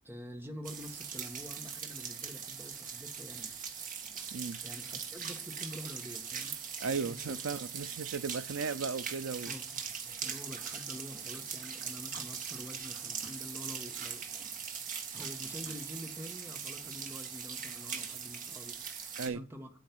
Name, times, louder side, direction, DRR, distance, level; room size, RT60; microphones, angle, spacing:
voice 1, 0.0-3.5 4.6-6.6 7.0-7.6 9.5-14.3 15.1-19.7, equal, 10° right, 1.6 m, -47 dB
sound 1, 0.6-19.3, right 7 dB, 40° right, 1.7 m, -41 dB
voice 2, 6.8-9.5 19.2-19.4, right 5 dB, 85° right, 0.5 m, -36 dB
9.3 x 9.2 x 5.4 m
head